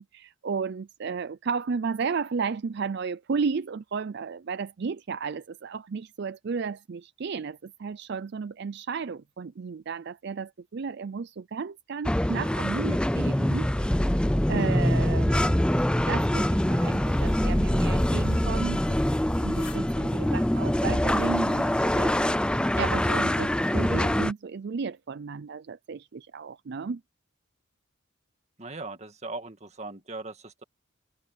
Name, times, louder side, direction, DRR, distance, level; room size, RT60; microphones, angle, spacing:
voice 1, 0.0-14.0 14.5-19.0 19.4-22.3 22.8-27.0, right 5 dB, 55° right, 0.4 m, -33 dB
sound 1, 12.1-24.3, left 1 dB, 5° left, 0.4 m, -24 dB
voice 2, 14.7-15.1 28.6-30.6, right 2 dB, 30° right, 2.1 m, -39 dB
sound 2, 16.6-23.9, left 6 dB, 60° left, 4.5 m, -55 dB
head